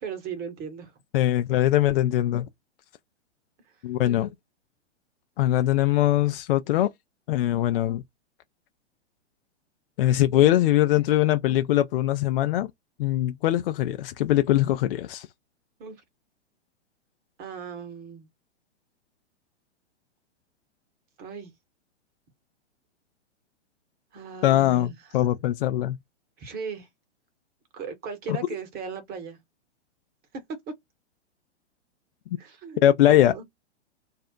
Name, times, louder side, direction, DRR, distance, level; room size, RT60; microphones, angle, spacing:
voice 1, 0.0-0.9 3.6-3.7 15.8-16.0 17.4-18.3 21.2-21.5 24.1-24.9 26.4-26.9 27.7-29.4 30.7-30.8 32.4-33.4, right 6 dB, 25° right, 1.0 m, -37 dB
voice 2, 1.1-2.5 3.8-4.3 5.4-6.9 7.3-8.0 10.0-12.7 13.0-15.3 24.4-26.0 28.3-28.4 32.8-33.3, left 13 dB, 55° left, 0.4 m, -22 dB
2.4 x 2.0 x 3.6 m
hypercardioid pair, 115°, 35 cm